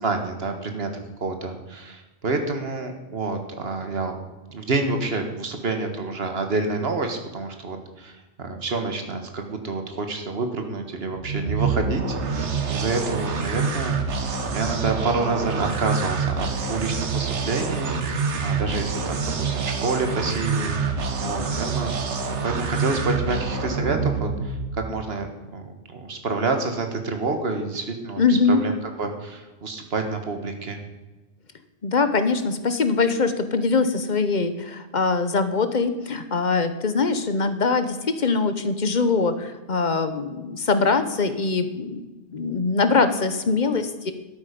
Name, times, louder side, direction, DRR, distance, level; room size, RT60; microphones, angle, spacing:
voice 1, 0.0-0.9 1.2-4.2 4.5-14.0 14.5-21.9 22.4-25.3 25.5-28.7 29.0-30.8, right 3 dB, 60° right, 5 dB, 1.7 m, -28 dB
sound 1, 11.1-24.9, right 5 dB, 80° right, 1.4 m, -26 dB
voice 2, 28.2-28.6 31.8-42.1 42.3-44.1, left 4 dB, 45° left, 10 dB, 1.0 m, -22 dB
11.5 x 8.9 x 5.2 m, 1.1 s
omnidirectional pair, 1.2 m